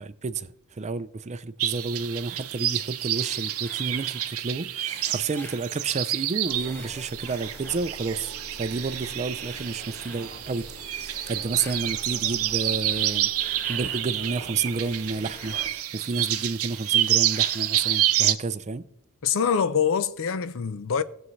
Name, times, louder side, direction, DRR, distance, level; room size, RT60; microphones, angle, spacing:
voice 1, 0.0-13.3 13.7-18.9, right 4 dB, 30° right, 0.4 m, -31 dB
sound 1, 1.6-18.3, right 12 dB, 70° right, 0.7 m, -28 dB
sound 2, 3.1-4.4 4.8-6.2 6.6-8.1 8.7-10.3 11.0-12.1 12.7-14.1 14.5-16.4 16.7-18.1, left 1 dB, 10° left, 0.7 m, -49 dB
sound 3, 6.4-15.7, equal, 30° left, 2.5 m, -45 dB
voice 2, 19.2-21.0, left 7 dB, 65° left, 0.5 m, -24 dB
18.0 x 7.2 x 3.2 m
head